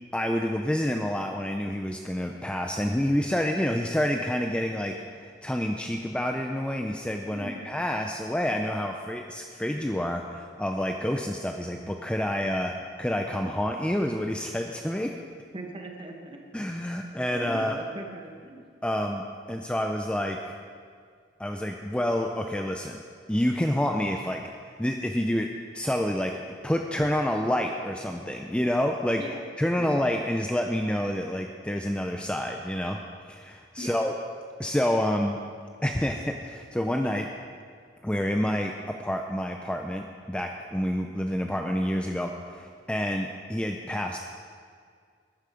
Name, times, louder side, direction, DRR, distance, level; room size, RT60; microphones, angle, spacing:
voice 1, 0.1-12.7 13.0-15.1 16.5-17.8 18.8-20.5 21.4-23.0 23.3-24.4 24.8-26.4 26.6-29.2 29.6-33.0 33.3-34.1 34.6-35.4 35.8-37.3 38.0-38.7 39.0-44.2, left 1 dB, 5° left, 3 dB, 0.5 m, -28 dB
voice 2, 7.3-7.7 15.5-16.4 17.3-18.7 29.2-29.4 29.7-29.9 33.8-34.0, right 1 dB, 30° right, 2 dB, 1.4 m, -39 dB
12.5 x 9.9 x 5.0 m, 2.1 s
head